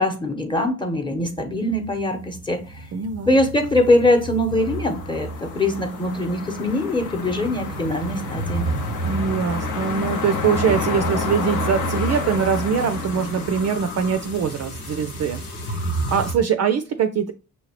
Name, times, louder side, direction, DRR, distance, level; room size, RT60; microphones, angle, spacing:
voice 1, 0.0-2.9 3.3-8.7, left 1 dB, 10° left, 1.0 m, -22 dB
sound 1, 1.2-16.3, right 2 dB, 85° left, 0.9 m, -31 dB
voice 2, 2.9-3.3 9.0-17.3, right 7 dB, 40° right, 0.4 m, -23 dB
sound 2, 4.5-14.8, left 5 dB, 45° left, 0.8 m, -31 dB
6.2 x 2.8 x 2.9 m
hypercardioid pair, 40°, 44 cm